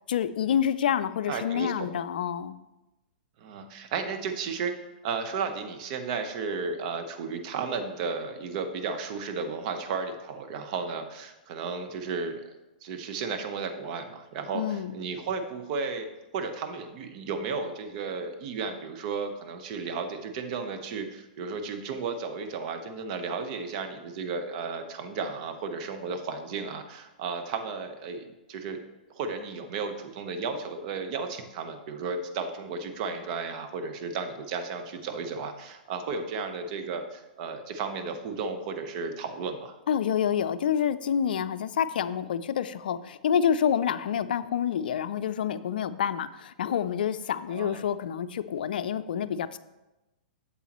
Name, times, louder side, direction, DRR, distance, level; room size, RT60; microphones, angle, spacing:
voice 1, 0.1-2.6 14.5-14.9 39.9-49.6, left 8 dB, 70° left, 13 dB, 0.4 m, -28 dB
voice 2, 1.3-1.9 3.4-4.7 5.0-12.4 12.8-16.1 16.3-28.8 29.1-39.8 47.5-47.9, right 5 dB, 50° right, 6 dB, 1.0 m, -34 dB
8.3 x 7.3 x 3.0 m, 1.0 s
hypercardioid pair, 125°, 5 cm